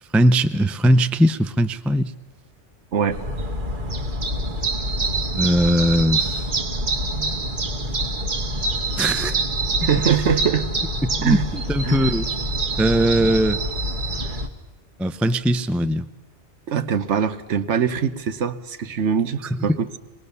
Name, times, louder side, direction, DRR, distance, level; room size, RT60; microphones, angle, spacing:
voice 1, 0.1-2.1 5.4-6.4 9.0-9.4 11.0-12.3 12.8-13.6 15.0-16.1 19.7-19.8, equal, ahead, 12 dB, 0.3 m, -20 dB
voice 2, 2.9-3.2 9.8-10.7 11.2-11.5 11.8-12.1 16.7-20.0, right 7 dB, 75° right, 12 dB, 1.2 m, -22 dB
sound 1, 3.1-14.5, right 2 dB, 45° right, 1.5 m, -25 dB
24.5 x 20.0 x 6.9 m, 1.1 s
omnidirectional pair, 1.2 m